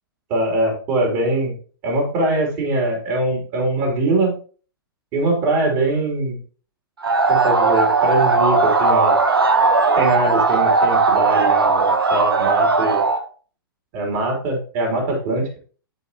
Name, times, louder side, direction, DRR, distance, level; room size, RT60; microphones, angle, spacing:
voice 1, 0.3-1.5 1.8-4.4 5.1-6.4 7.3-9.2 9.9-13.0 13.9-15.6, right 2 dB, 35° right, 1 dB, 3.3 m, -22 dB
sound 1, 7.0-13.2, right 3 dB, 70° right, 1.2 m, -17 dB
13.0 x 4.5 x 3.0 m, 0.39 s
figure-of-eight pair, 110°, 12 cm